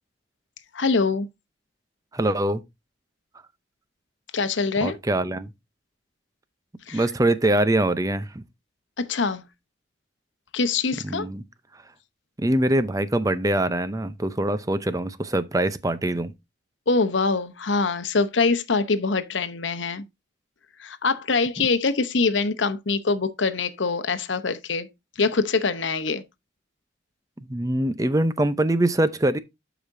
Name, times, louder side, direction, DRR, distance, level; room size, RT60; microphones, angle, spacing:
voice 1, 0.7-1.3 4.3-5.0 6.9-7.0 9.0-9.4 10.5-11.3 16.9-20.0 20.8-24.9 25.2-26.2, left 4 dB, 75° left, 0.9 m, -24 dB
voice 2, 2.1-2.6 4.8-5.5 6.9-8.4 11.0-11.4 12.4-16.3 27.5-29.4, right 1 dB, 20° right, 0.6 m, -23 dB
12.0 x 5.0 x 2.6 m
head